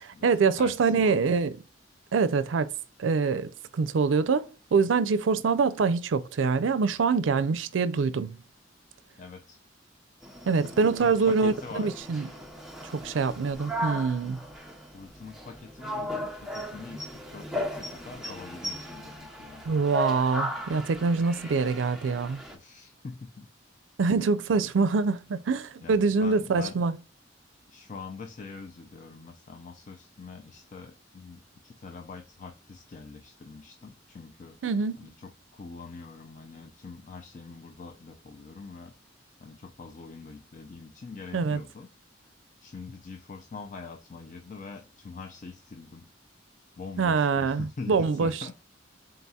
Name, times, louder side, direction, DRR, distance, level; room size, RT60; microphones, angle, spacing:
voice 1, 0.0-1.6 2.1-2.7 3.0-4.5 4.7-8.4 10.5-12.3 12.8-14.4 19.7-22.4 24.0-27.0 34.6-35.1 41.3-41.6 47.0-48.4, right 4 dB, 85° right, 0.4 m, -25 dB
voice 2, 0.6-1.2 9.2-9.6 10.7-12.0 14.9-19.6 22.5-23.5 24.5-24.8 25.8-26.8 27.7-34.6 35.0-38.9 39.4-41.9 42.6-46.1 46.8-48.5, left 4 dB, 40° left, 0.4 m, -43 dB
sound 1, 10.2-22.6, equal, ahead, 0.7 m, -37 dB
4.1 x 3.8 x 2.3 m
head